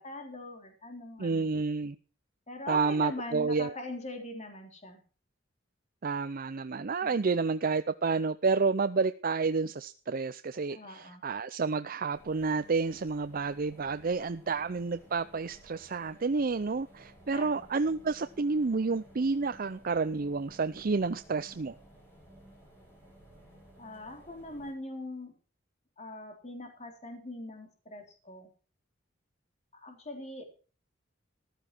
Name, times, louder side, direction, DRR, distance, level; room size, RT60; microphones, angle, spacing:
voice 1, 0.0-1.5 2.5-5.0 7.0-7.2 10.7-11.3 17.3-17.8 23.8-25.4 26.0-28.5 29.7-30.4, left 1 dB, 35° left, 4 dB, 3.5 m, -42 dB
voice 2, 1.2-2.0 2.7-3.7 6.0-21.7, right 4 dB, 45° right, 11 dB, 0.5 m, -30 dB
sound 1, 12.1-24.7, right 1 dB, 10° left, 7.3 m, -56 dB
15.0 x 12.5 x 4.4 m, 0.37 s
head